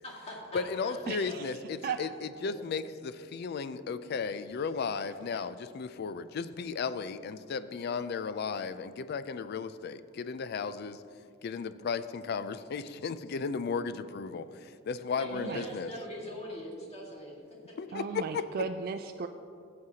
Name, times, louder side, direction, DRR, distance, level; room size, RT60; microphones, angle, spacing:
voice 1, 0.0-1.6 1.8-1.9 2.4-2.5 15.2-17.4, equal, 35° left, -3 dB, 2.0 m, -42 dB
voice 2, 0.5-11.0 11.4-15.9 17.8-18.5, left 5 dB, 55° left, 13 dB, 0.4 m, -35 dB
voice 3, 1.1-1.5 1.8-2.0 5.3-5.4 15.3-15.6 17.9-19.3, right 6 dB, 50° right, 6 dB, 0.3 m, -36 dB
14.5 x 7.7 x 2.8 m, 2.4 s
head